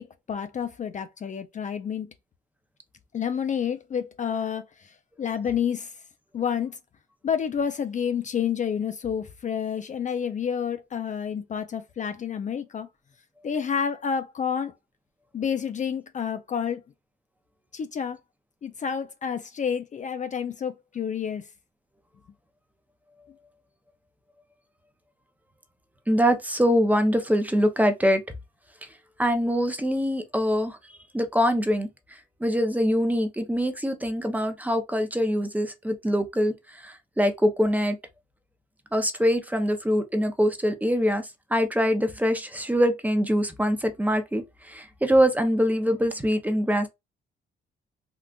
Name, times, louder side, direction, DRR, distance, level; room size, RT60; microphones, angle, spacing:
voice 1, 0.0-2.1 3.1-5.9 6.3-6.8 7.2-12.9 13.4-14.7 15.3-16.8 17.7-18.2 18.6-21.5, left 7 dB, 40° left, 0.4 m, -29 dB
voice 2, 26.1-28.2 29.2-30.8 31.1-38.0 38.9-46.9, equal, 10° right, 0.6 m, -24 dB
3.7 x 2.3 x 2.3 m
cardioid pair, 90°, 20 cm